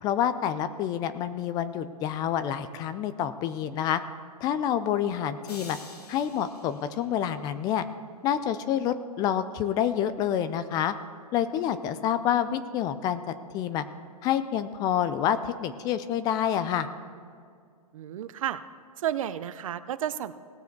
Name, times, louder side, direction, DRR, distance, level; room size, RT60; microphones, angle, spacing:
voice 1, 0.0-4.0 4.4-5.8 6.1-7.8 8.2-10.9 11.3-13.2 13.5-13.8 14.2-16.9, left 10 dB, 20° left, 12 dB, 0.4 m, -28 dB
sound 1, 5.4-7.7, left 3 dB, 90° left, 1.9 m, -48 dB
voice 2, 17.9-18.6 19.0-20.3, right 11 dB, 60° right, 14 dB, 0.6 m, -31 dB
18.5 x 7.0 x 4.6 m, 2.2 s
hypercardioid pair, 135°, 20 cm